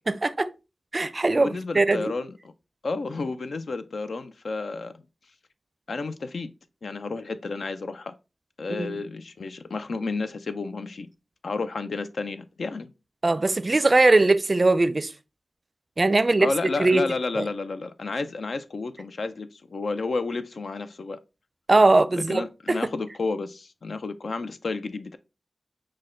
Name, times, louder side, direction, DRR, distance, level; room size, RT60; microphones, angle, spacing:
voice 1, 0.1-0.5 0.9-2.1 8.7-9.0 13.2-15.1 16.0-16.5 16.8-17.0 17.4-17.5 21.7-22.8, right 2 dB, 45° right, 0.4 m, -20 dB
voice 2, 1.4-2.5 2.8-4.9 5.9-6.5 6.8-8.2 8.6-11.1 11.4-12.9 16.4-21.2 22.1-25.2, left 3 dB, 80° left, 0.4 m, -31 dB
6.2 x 2.2 x 3.7 m
cardioid pair, 40°, 0 cm